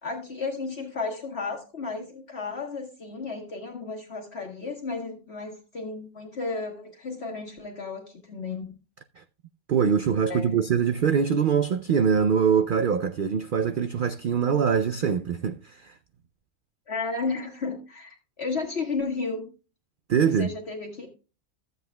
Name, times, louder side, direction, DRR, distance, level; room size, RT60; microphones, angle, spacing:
voice 1, 0.0-8.8 10.3-10.6 16.9-19.5 20.2-21.1, left 4 dB, 50° left, 1.6 m, -33 dB
voice 2, 9.7-15.9 20.1-20.5, right 7 dB, 75° right, 0.4 m, -23 dB
15.0 x 7.9 x 2.2 m
omnidirectional pair, 1.4 m